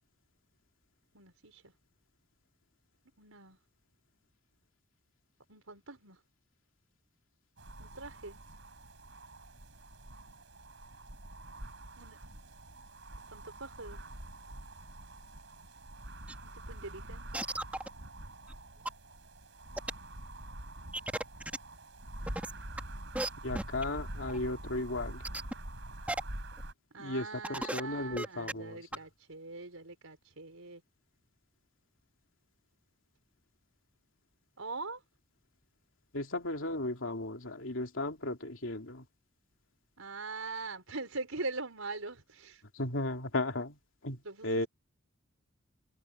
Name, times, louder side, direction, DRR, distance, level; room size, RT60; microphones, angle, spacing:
voice 1, 1.1-1.6 3.2-3.6 5.5-6.2 7.8-8.4 12.0-12.2 13.3-14.0 16.4-17.3 26.9-30.8 34.6-35.0 40.0-42.6 44.2-44.7, right 3 dB, 85° right, 5.0 m, -42 dB
sound 1, 7.6-26.7, right 1 dB, 60° right, 7.6 m, -46 dB
sound 2, 16.3-16.4 16.8-16.9 17.3-17.9 18.5-18.6 18.8-18.9 19.8-19.9 20.9-21.6 22.3-22.8 23.1-23.3 23.5-23.8 24.3-24.4 25.2-25.5 26.1-26.2 26.6-26.7 27.1-27.2 27.4-27.8 28.1-28.5 28.9-29.0, right 1 dB, 5° right, 2.1 m, -34 dB
voice 2, 23.4-25.2 27.0-28.9 36.1-39.0 42.7-44.7, left 2 dB, 65° left, 3.1 m, -35 dB
head